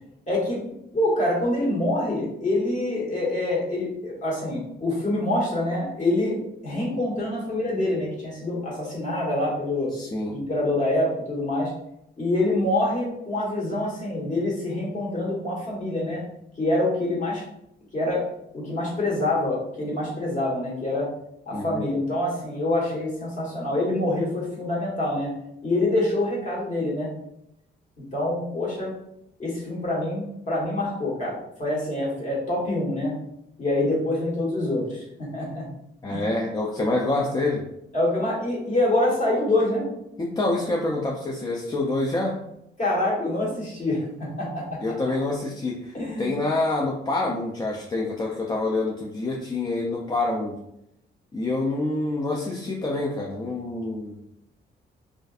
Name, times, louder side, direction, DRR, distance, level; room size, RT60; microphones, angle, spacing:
voice 1, 0.3-0.6 0.9-6.4 6.6-9.9 10.3-11.7 12.2-16.2 16.6-17.4 17.9-18.2 18.5-21.1 21.5-25.3 25.6-27.1 28.1-28.9 29.4-33.1 33.6-35.6 36.1-36.2 37.9-39.8 42.8-44.8 45.9-46.3, left 1 dB, 40° left, -5 dB, 1.3 m, -26 dB
voice 2, 9.9-10.4 21.5-21.9 36.0-37.7 40.2-42.4 44.8-50.6 51.3-54.2, left 2 dB, 20° left, -2 dB, 0.3 m, -27 dB
2.5 x 2.3 x 2.4 m, 0.80 s
cardioid pair, 90°, 20 cm